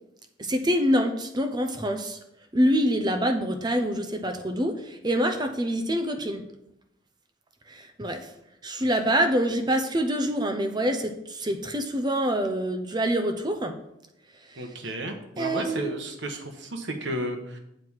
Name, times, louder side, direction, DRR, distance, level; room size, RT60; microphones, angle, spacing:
voice 1, 0.4-2.2 2.5-6.4 7.7-8.2 8.6-13.7 15.4-15.9, equal, 25° right, 6 dB, 0.7 m, -26 dB
voice 2, 14.6-17.6, right 1 dB, 75° right, 5 dB, 1.2 m, -33 dB
7.8 x 4.7 x 7.3 m, 0.82 s
head